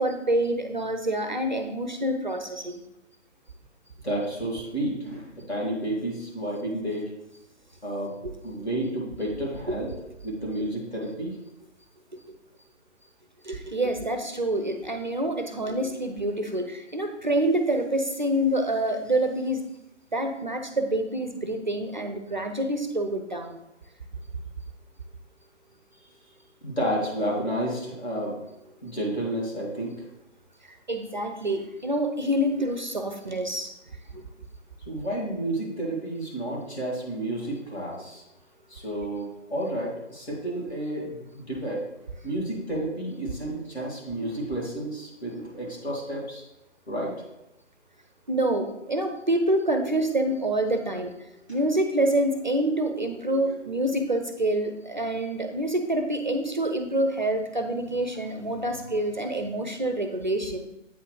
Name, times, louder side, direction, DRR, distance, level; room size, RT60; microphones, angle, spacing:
voice 1, 0.0-2.7 8.2-8.3 9.7-9.8 12.1-12.4 13.4-19.6 20.1-23.6 30.7-33.7 34.1-34.2 48.3-60.7, right 1 dB, 40° right, 6 dB, 0.4 m, -27 dB
voice 2, 4.0-7.1 7.8-8.1 8.4-9.9 10.2-11.4 26.6-28.4 28.8-30.0 34.9-38.2 38.7-41.8 42.2-46.4 46.9-47.2, right 1 dB, 60° left, -3 dB, 2.3 m, -31 dB
8.2 x 3.7 x 3.1 m, 0.88 s
figure-of-eight pair, 140°, 37 cm